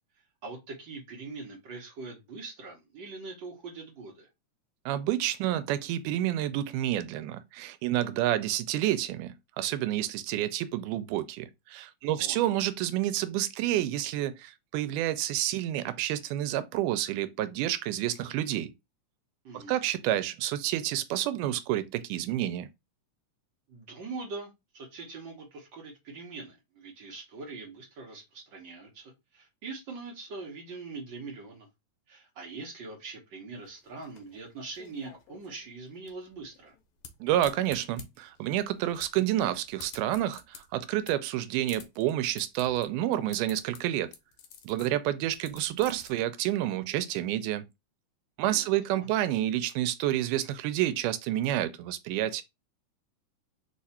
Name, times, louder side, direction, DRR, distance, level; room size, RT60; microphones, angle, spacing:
voice 1, 0.4-4.3 12.0-12.4 19.4-19.8 23.7-31.7 32.1-36.7 48.4-49.1, right 3 dB, 60° right, 1.2 m, -43 dB
voice 2, 4.9-18.7 19.5-22.7 37.2-44.1 44.6-47.6 48.4-52.4, right 13 dB, 85° right, 2.1 m, -29 dB
sound 1, 33.6-46.1, left 7 dB, 70° left, 1.9 m, -51 dB
4.8 x 2.4 x 4.1 m
omnidirectional pair, 3.6 m